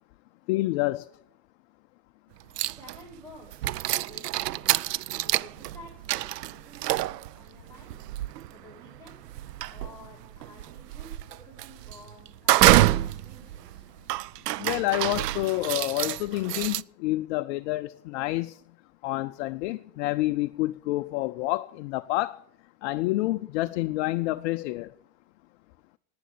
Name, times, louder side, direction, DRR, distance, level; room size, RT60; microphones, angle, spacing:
voice 1, 0.5-1.1 14.6-18.6 19.0-22.4 22.8-24.9, left 18 dB, 45° left, 0.5 m, -28 dB
sound 1, 2.6-3.1 3.5-16.8, right 15 dB, 75° right, 0.5 m, -27 dB
voice 2, 2.7-4.7 5.1-8.0 8.5-9.1 9.7-13.9, left 1 dB, 5° left, 5.2 m, -51 dB
11.0 x 9.5 x 8.9 m
hypercardioid pair, 100°, 49 cm